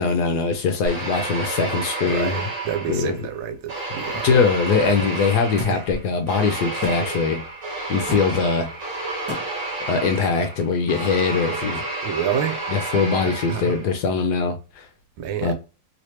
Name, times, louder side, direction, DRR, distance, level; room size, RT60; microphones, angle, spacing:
voice 1, 0.0-2.5 2.9-3.3 4.2-7.4 7.9-8.7 9.9-11.8 12.7-14.9 15.4-15.5, left 5 dB, 75° left, 0.9 m, -22 dB
sound 1, 0.9-3.3 3.7-14.0, right 2 dB, 45° right, 1.6 m, -30 dB
voice 2, 2.1-4.3 5.7-5.8 12.0-12.6 13.5-13.8 15.2-15.5, right 9 dB, 80° right, 1.4 m, -28 dB
sound 2, 5.6-5.7 6.8-7.0 8.1-8.3 9.3-9.4, left 2 dB, 10° right, 0.7 m, -30 dB
3.2 x 3.1 x 2.8 m
omnidirectional pair, 2.2 m